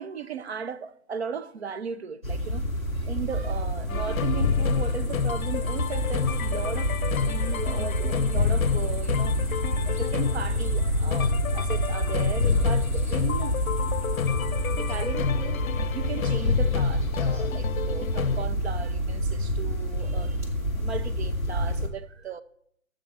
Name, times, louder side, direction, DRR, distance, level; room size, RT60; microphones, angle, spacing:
voice 1, 0.0-2.6 2.9-9.4 9.6-13.6 14.8-22.4, right 6 dB, 50° right, 0.7 m, -36 dB
sound 1, 2.2-21.9, equal, 10° right, 0.5 m, -28 dB
sound 2, 3.9-18.5, left 7 dB, 80° left, 0.6 m, -29 dB
12.5 x 7.7 x 4.2 m
figure-of-eight pair, 145°, 41 cm